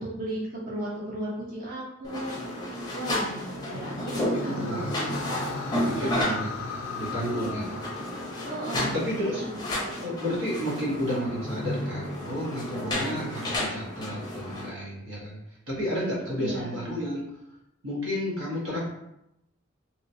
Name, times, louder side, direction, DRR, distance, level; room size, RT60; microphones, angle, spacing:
voice 1, 0.0-2.3 2.9-3.4 3.7-4.9 5.7-6.3 7.2-7.8 8.4-9.9 16.4-16.8, right 1 dB, 45° right, -6 dB, 0.8 m, -35 dB
sound 1, 2.0-14.7, left 1 dB, 20° left, 0.6 m, -32 dB
sound 2, 3.3-9.6, left 4 dB, 70° left, 0.4 m, -38 dB
voice 2, 4.4-4.9 5.7-7.8 8.7-9.4 10.0-15.4 15.7-17.3 17.8-18.8, equal, 90° right, -6 dB, 1.2 m, -32 dB
2.9 x 2.9 x 2.7 m, 0.85 s
head